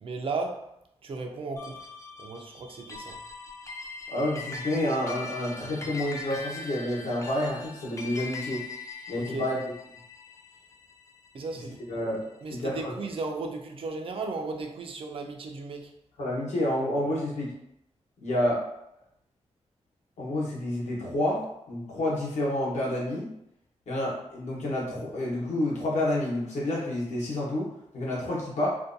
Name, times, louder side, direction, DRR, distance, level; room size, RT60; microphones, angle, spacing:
voice 1, 0.0-1.9 2.2-3.2 9.1-9.5 11.3-12.0 12.4-15.9, right 3 dB, 50° right, 0.4 m, -35 dB
sound 1, 1.6-12.2, left 3 dB, 25° left, 0.4 m, -41 dB
voice 2, 4.1-8.6 9.1-9.6 11.9-12.2 12.5-12.9 16.2-17.5 18.2-18.6 20.2-23.3 23.9-28.7, left 1 dB, 75° left, 1.0 m, -29 dB
2.6 x 2.2 x 2.5 m
wide cardioid pair, 115°, 12 cm